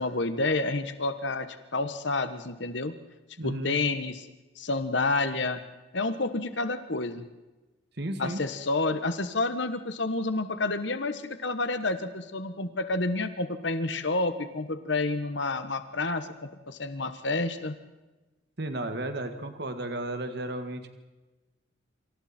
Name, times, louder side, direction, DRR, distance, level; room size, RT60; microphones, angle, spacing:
voice 1, 0.0-1.5 1.7-2.9 3.4-4.3 4.6-5.6 5.9-7.2 8.2-17.7, left 3 dB, 65° left, 10 dB, 1.4 m, -29 dB
voice 2, 3.4-3.8 8.0-8.4 18.6-20.9, right 1 dB, 55° right, 7 dB, 2.0 m, -33 dB
28.5 x 26.5 x 4.5 m, 1.1 s
head